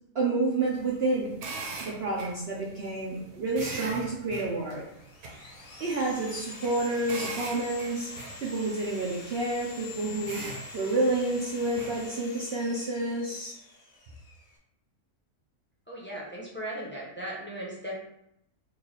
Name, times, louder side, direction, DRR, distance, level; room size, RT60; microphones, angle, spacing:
voice 1, 0.1-1.3 1.8-4.8 5.3-5.5 5.8-10.4 10.7-13.5, right 2 dB, 55° right, -4 dB, 0.8 m, -29 dB
sound 1, 0.6-12.0, right 3 dB, 80° right, 1.2 m, -43 dB
Sawing, 4.7-14.6, left 4 dB, 60° left, 0.4 m, -45 dB
voice 2, 15.9-17.9, right 1 dB, 10° left, -6 dB, 0.6 m, -37 dB
3.1 x 2.7 x 4.0 m, 0.78 s
omnidirectional pair, 1.5 m